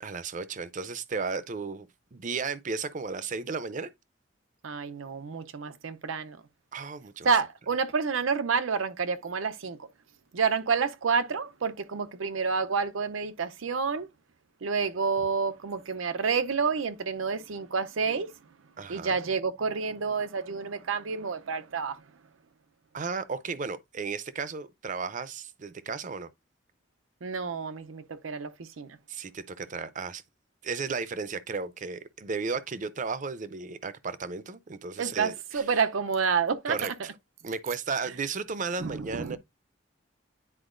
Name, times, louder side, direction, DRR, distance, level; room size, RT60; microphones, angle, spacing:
voice 1, 0.0-3.9 6.7-7.3 18.8-19.2 22.9-26.3 29.1-30.2 30.6-35.6 36.7-36.9 37.4-39.4, right 4 dB, 40° right, 0.5 m, -34 dB
voice 2, 4.6-6.4 7.2-9.9 10.3-14.1 14.6-18.3 18.9-22.0 27.2-29.0 35.0-36.8 38.8-39.4, right 5 dB, 90° right, 0.6 m, -29 dB
9.9 x 4.4 x 2.5 m
head